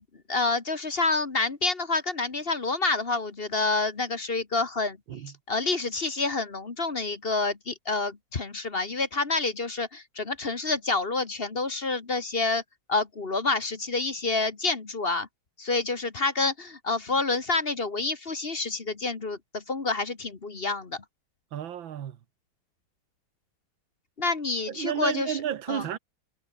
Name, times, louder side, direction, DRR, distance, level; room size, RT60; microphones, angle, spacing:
voice 1, 0.3-5.0 5.5-12.6 12.9-15.3 15.6-21.0 24.2-25.4 25.7-25.8, left 3 dB, 30° left, 1.6 m, -28 dB
voice 2, 21.5-22.2 24.7-26.0, right 10 dB, 75° right, 2.0 m, -32 dB
omnidirectional pair, 2.1 m